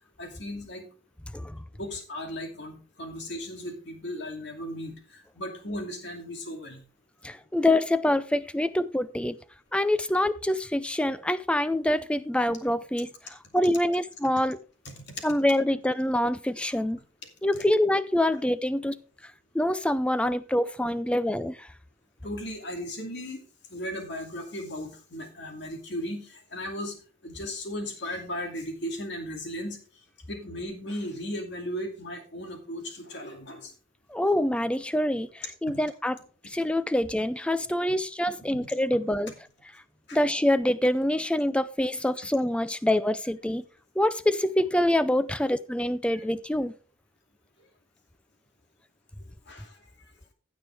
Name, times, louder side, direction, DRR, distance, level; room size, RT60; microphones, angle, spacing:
voice 1, 0.2-0.9 1.8-6.8 14.8-15.0 22.2-23.4 23.7-27.0 27.2-29.8 30.3-33.7 35.7-35.8 38.6-38.7 40.1-40.2 46.1-46.2 49.5-49.8, left 1 dB, 55° left, 2.5 m, -36 dB
voice 2, 1.3-1.6 7.2-9.4 9.7-14.6 15.2-17.0 17.4-19.0 19.2-21.7 34.1-36.2 36.4-39.3 40.1-43.6 44.0-46.7, left 1 dB, 5° left, 0.4 m, -26 dB
16.0 x 6.2 x 3.4 m
head